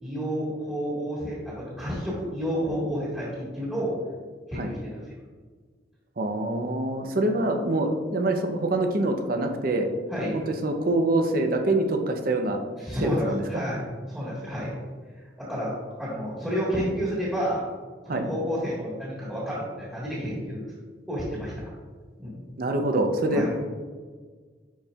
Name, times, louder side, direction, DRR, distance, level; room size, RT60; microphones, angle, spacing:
voice 1, 0.0-3.9 4.5-5.0 10.1-10.4 12.8-13.8 14.1-14.8 15.4-15.7 16.0-17.6 18.0-20.6 21.1-21.7 22.2-22.3 23.3-23.5, equal, 5° right, -8 dB, 1.5 m, -30 dB
voice 2, 6.2-9.9 10.3-12.6 13.0-13.6 18.1-18.3 22.6-23.6, right 2 dB, 55° right, 4 dB, 0.7 m, -25 dB
10.0 x 4.4 x 2.4 m, 1.5 s
head